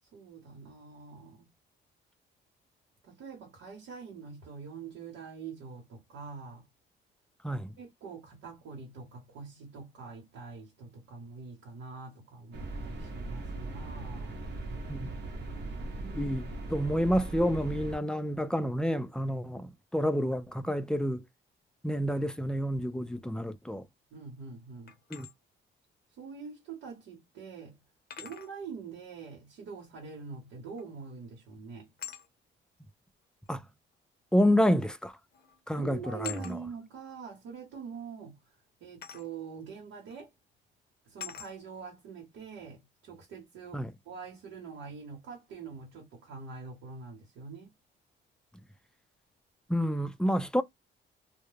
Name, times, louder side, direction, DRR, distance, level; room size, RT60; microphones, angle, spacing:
voice 1, 0.1-1.5 3.0-6.6 7.8-14.4 15.9-16.3 24.1-24.9 26.2-27.8 28.2-31.9 35.7-38.4 38.8-40.3 41.1-47.7, right 5 dB, 90° right, 1.0 m, -45 dB
voice 2, 7.4-7.8 14.9-15.1 16.1-16.4 16.7-21.2 21.8-23.8 25.1-25.3 33.5-33.6 34.3-35.1 35.7-36.6 43.7-43.9 49.7-50.6, equal, 5° left, 0.3 m, -29 dB
sound 1, 12.5-18.0, right 2 dB, 60° right, 0.8 m, -39 dB
sound 2, 24.9-25.3 26.8-26.9 28.1-28.5 30.8-31.1 32.0-32.3 33.5-33.6 34.8-35.0 35.3-35.6 36.2-36.6 39.0-39.3 40.1-40.2 41.2-41.5, left 9 dB, 50° left, 0.6 m, -43 dB
2.2 x 2.1 x 3.1 m
cardioid pair, 90°, 20 cm